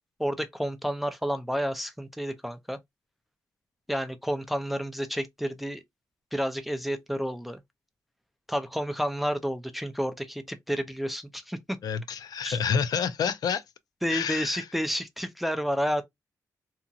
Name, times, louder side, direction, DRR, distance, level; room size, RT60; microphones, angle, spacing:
voice 1, 0.2-2.8 3.9-5.8 6.3-7.6 8.5-11.8 12.4-12.6 14.0-16.0, equal, ahead, 0.3 m, -30 dB
voice 2, 11.8-13.6 14.1-14.6, left 7 dB, 75° left, 0.4 m, -28 dB
2.8 x 2.3 x 2.5 m
wide cardioid pair, 145°, 7 cm